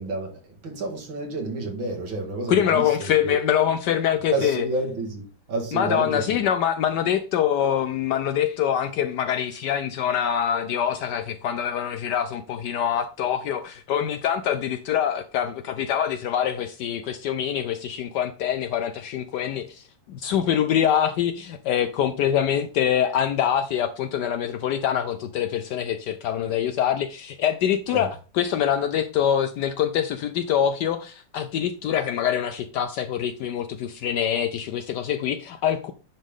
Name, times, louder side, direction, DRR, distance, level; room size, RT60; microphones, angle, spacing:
voice 1, 0.0-3.3 4.3-6.4 27.9-28.1, right 3 dB, 85° right, 2.7 m, -30 dB
voice 2, 2.5-4.6 5.7-28.1 28.3-35.9, left 9 dB, 70° left, 1.1 m, -24 dB
9.8 x 5.3 x 3.6 m
omnidirectional pair, 2.1 m